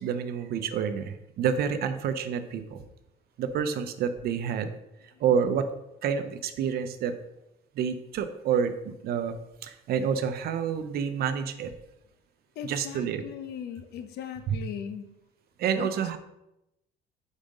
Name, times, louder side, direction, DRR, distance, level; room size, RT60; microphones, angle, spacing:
voice 1, 0.0-2.8 3.4-4.7 5.2-5.7 6.0-7.2 7.8-9.3 9.6-11.7 12.6-13.2 14.5-14.6 15.6-16.2, right 7 dB, 65° right, 9 dB, 0.7 m, -28 dB
voice 2, 12.6-15.1 15.8-15.9, left 8 dB, 75° left, 9 dB, 0.7 m, -38 dB
5.3 x 4.1 x 5.1 m, 0.88 s
cardioid pair, 110°, 17 cm